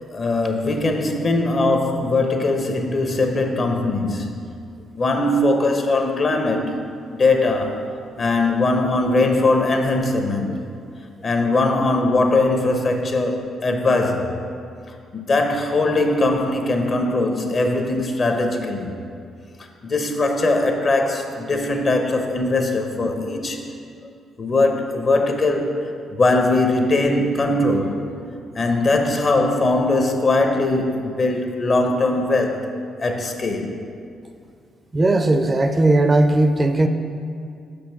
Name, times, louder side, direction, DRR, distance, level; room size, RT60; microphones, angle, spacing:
voice 1, 0.1-4.3 4.9-6.8 7.2-7.8 8.2-10.6 11.2-14.3 15.1-18.9 19.8-23.7 24.4-25.7 26.2-28.0 28.5-32.6 33.0-33.7, left 2 dB, 45° left, 4 dB, 0.9 m, -20 dB
voice 2, 34.9-36.9, right 2 dB, 30° right, 7 dB, 0.5 m, -17 dB
6.1 x 5.2 x 5.9 m, 2.4 s
supercardioid pair, 70°, 0 cm